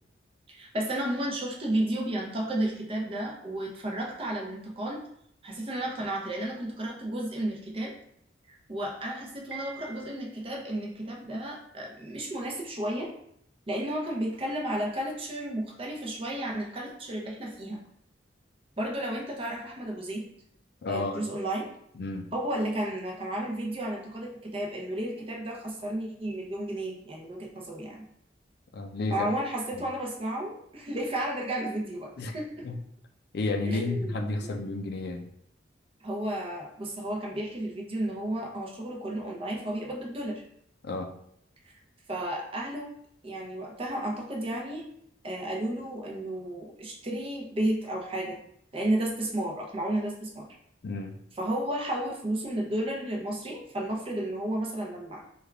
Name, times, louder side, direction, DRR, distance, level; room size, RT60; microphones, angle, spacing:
voice 1, 0.5-5.0 5.4-7.9 8.5-13.1 13.7-17.8 18.8-20.3 20.9-21.7 22.3-28.1 29.1-32.6 33.7-34.6 36.0-40.4 41.6-41.7 42.1-42.9 43.2-44.8 45.2-48.4 48.7-50.5 51.4-55.2, right 1 dB, 30° right, -1 dB, 0.6 m, -32 dB
Piano, 9.5-10.5, right 4 dB, 85° right, 1.0 m, -44 dB
voice 2, 20.8-21.3 22.0-22.3 28.7-29.3 29.8-29.9 32.2-32.4 32.6-32.8 33.3-35.3 40.8-41.1 50.8-51.2, left 2 dB, 60° left, 5 dB, 0.4 m, -31 dB
3.4 x 2.3 x 3.4 m, 0.71 s
head